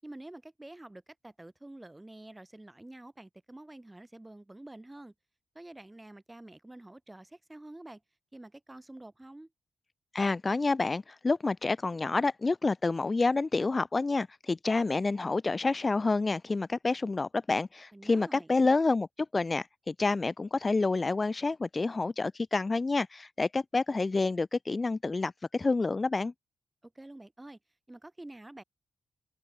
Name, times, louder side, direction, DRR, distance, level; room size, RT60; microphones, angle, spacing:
voice 1, 0.0-5.1 5.5-8.0 8.3-9.5 17.9-18.5 26.8-27.6 27.9-28.6, right 1 dB, 15° right, 5.9 m, -48 dB
voice 2, 10.1-19.1 19.3-26.3, left 3 dB, 30° left, 0.6 m, -28 dB
cardioid pair, 70°, 0 cm